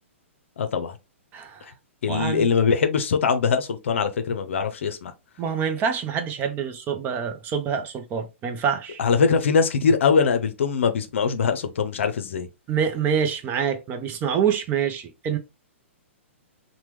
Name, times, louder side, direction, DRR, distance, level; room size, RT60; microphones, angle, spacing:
voice 1, 0.6-0.9 2.0-5.1 9.0-12.5, left 5 dB, 65° left, 0.6 m, -22 dB
voice 2, 1.3-1.7 2.0-2.5 5.4-9.0 12.7-15.4, right 7 dB, 25° right, 0.5 m, -26 dB
2.9 x 2.2 x 3.2 m
hypercardioid pair, 120°, 7 cm